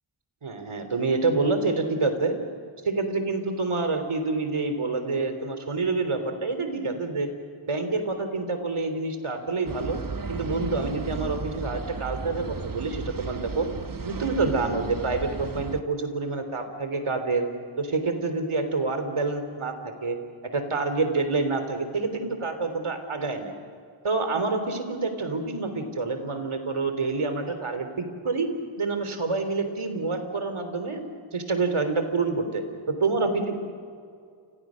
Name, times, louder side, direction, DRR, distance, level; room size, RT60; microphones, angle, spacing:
voice 1, 0.4-2.3 2.8-7.3 7.6-10.0 10.3-13.7 14.0-17.5 17.8-20.2 20.5-23.5 24.0-28.5 28.8-33.6, right 3 dB, 75° right, 8 dB, 3.5 m, -27 dB
sound 1, 9.7-15.8, right 4 dB, 40° right, 1.1 m, -35 dB
30.0 x 26.0 x 6.4 m, 2.3 s
wide cardioid pair, 65°, 50 cm